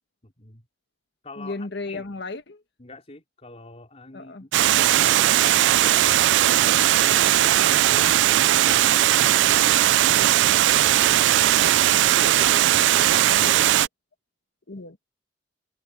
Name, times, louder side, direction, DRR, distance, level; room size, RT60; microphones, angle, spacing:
voice 1, 0.2-0.6 1.2-2.0 2.8-6.1 6.9-9.5 11.1-12.6, left 2 dB, 35° left, 4.2 m, -44 dB
voice 2, 1.4-2.6 4.1-4.4 12.4-13.9 14.7-15.0, left 3 dB, 70° left, 1.7 m, -36 dB
Water, 4.5-13.9, right 13 dB, 80° right, 0.3 m, -18 dB
head